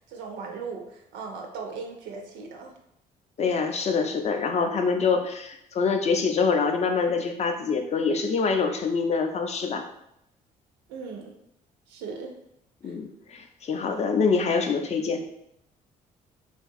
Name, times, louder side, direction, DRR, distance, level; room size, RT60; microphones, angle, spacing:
voice 1, 0.1-2.7 10.9-11.3 11.9-12.3 12.8-12.9, right 5 dB, 65° right, 2 dB, 0.4 m, -38 dB
voice 2, 3.4-9.8 12.8-15.2, left 5 dB, 35° left, 5 dB, 0.4 m, -25 dB
2.5 x 2.2 x 2.5 m, 0.78 s
hypercardioid pair, 45°, 21 cm